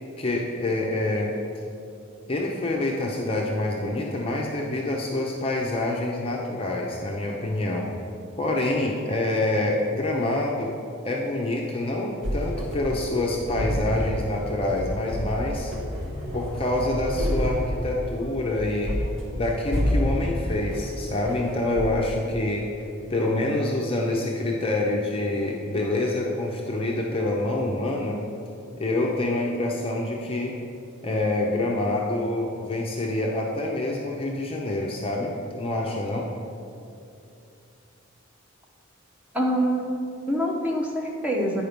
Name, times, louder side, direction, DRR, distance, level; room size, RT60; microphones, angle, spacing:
voice 1, 0.2-1.3 2.3-7.9 8.4-10.7 11.0-15.7 16.3-19.0 19.3-22.8 23.1-28.2 28.8-30.6 31.0-36.3, left 2 dB, 25° left, -1 dB, 0.6 m, -26 dB
sound 1, 12.2-21.9, equal, 65° right, 1.3 m, -29 dB
voice 2, 39.3-41.6, equal, 5° right, -2 dB, 0.9 m, -25 dB
9.3 x 5.0 x 5.1 m, 2.6 s
head